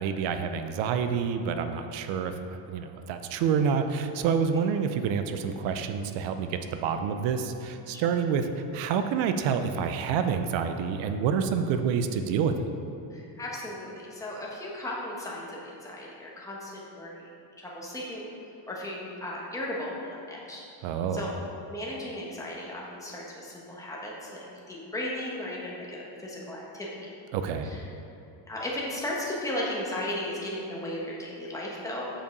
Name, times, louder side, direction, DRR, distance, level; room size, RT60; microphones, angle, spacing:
voice 1, 0.0-2.3 2.7-8.5 8.7-12.5 20.8-21.2 27.3-27.7, right 6 dB, 70° right, 8 dB, 0.7 m, -28 dB
voice 2, 13.1-17.3 17.6-18.3 18.7-20.6 21.1-21.3 21.7-26.9 27.6-27.8 28.5-32.1, left 1 dB, 5° left, -4 dB, 1.3 m, -36 dB
7.1 x 5.7 x 5.3 m, 2.8 s
cardioid pair, 155°, 47 cm